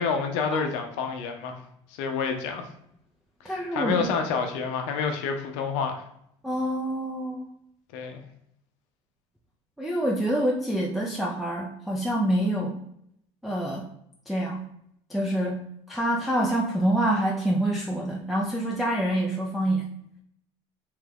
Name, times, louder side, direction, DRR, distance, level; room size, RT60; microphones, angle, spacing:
voice 1, 0.0-1.6 1.9-2.6 3.4-6.0 7.9-8.2, left 5 dB, 75° left, 4 dB, 0.6 m, -28 dB
voice 2, 3.4-4.1 6.4-7.5 9.8-12.8 13.4-13.9 14.3-14.6 15.1-15.6 15.9-19.9, right 1 dB, ahead, -4 dB, 0.4 m, -26 dB
3.0 x 2.3 x 3.3 m, 0.73 s
supercardioid pair, 95°, 15 cm